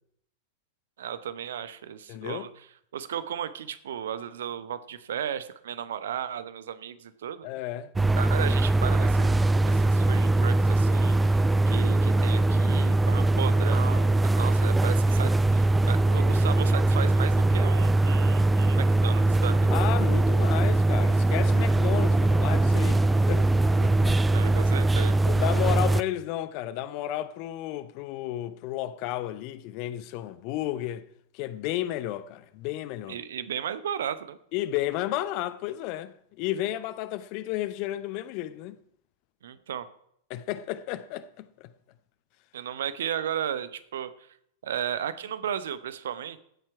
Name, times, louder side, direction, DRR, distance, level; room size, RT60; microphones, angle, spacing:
voice 1, 1.0-2.5 2.9-7.5 8.1-11.4 11.7-19.8 24.3-25.2 33.1-34.4 39.4-39.9 42.5-44.1 44.6-46.4, right 9 dB, 60° right, 0.8 m, -34 dB
voice 2, 2.1-2.5 7.4-7.9 19.7-23.5 23.8-24.2 25.3-31.0 31.3-33.2 34.5-38.8 40.3-41.5, left 14 dB, 45° left, 0.7 m, -32 dB
sound 1, 8.0-26.0, right 2 dB, 10° right, 0.4 m, -22 dB
15.5 x 7.5 x 4.6 m
figure-of-eight pair, 90°, 0 cm